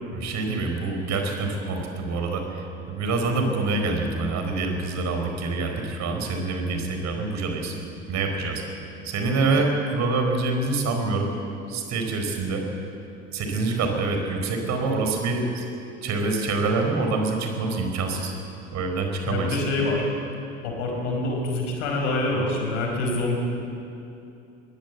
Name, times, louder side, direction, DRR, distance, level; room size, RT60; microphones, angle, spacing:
voice 1, 0.1-7.7 8.1-8.6 9.0-11.3 11.7-12.6 13.3-15.6 16.0-18.3 18.7-19.6, right 3 dB, 45° right, 4 dB, 4.4 m, -26 dB
voice 2, 19.3-20.1 20.6-23.4, left 2 dB, 70° left, 1 dB, 5.3 m, -26 dB
22.0 x 17.0 x 8.2 m, 2.7 s
figure-of-eight pair, 70°, 38 cm